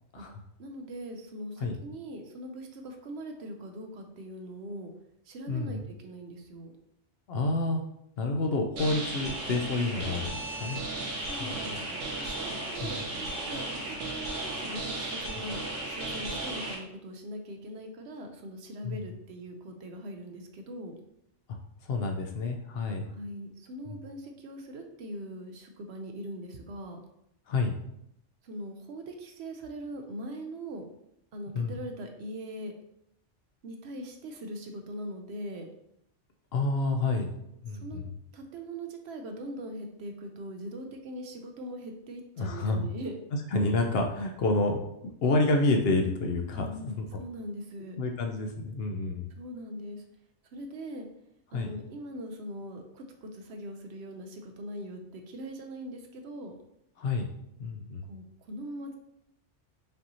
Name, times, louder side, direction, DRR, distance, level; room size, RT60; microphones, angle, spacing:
voice 1, 0.6-4.9 5.3-6.7 11.3-15.6 15.9-20.9 23.1-27.0 28.4-30.9 31.3-32.7 33.6-35.7 37.7-38.0 38.3-43.1 46.5-48.0 49.4-50.0 50.5-51.1 51.5-56.5 58.1-59.0, right 1 dB, 65° right, 4 dB, 0.8 m, -41 dB
voice 2, 5.5-5.8 7.3-7.8 8.2-10.8 11.4-11.7 12.8-12.9 18.8-19.0 21.9-23.1 27.5-27.7 31.5-31.7 36.5-37.3 37.6-38.0 42.4-42.9 43.5-44.9 45.2-47.0 48.0-49.3 51.5-51.7 57.0-57.3 57.6-58.1, left 2 dB, 65° left, 3 dB, 0.7 m, -28 dB
sound 1, 8.8-16.8, right 2 dB, 85° right, 1.3 m, -35 dB
5.3 x 2.7 x 2.8 m, 0.78 s
omnidirectional pair, 1.2 m